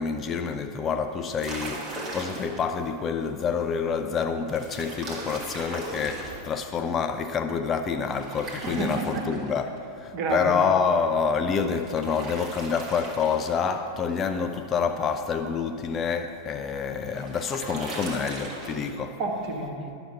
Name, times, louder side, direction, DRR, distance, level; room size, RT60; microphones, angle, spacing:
voice 1, 0.0-19.2, left 6 dB, 25° left, 0.5 m, -27 dB
sound 1, 1.2-2.6 4.5-6.4 8.1-9.8 11.6-13.8 16.7-18.8, right 2 dB, 25° right, 1.7 m, -38 dB
voice 2, 8.6-9.2 10.1-10.6 19.2-20.0, right 3 dB, 45° right, 1.5 m, -29 dB
11.5 x 6.0 x 5.5 m
figure-of-eight pair, 90°, 0 cm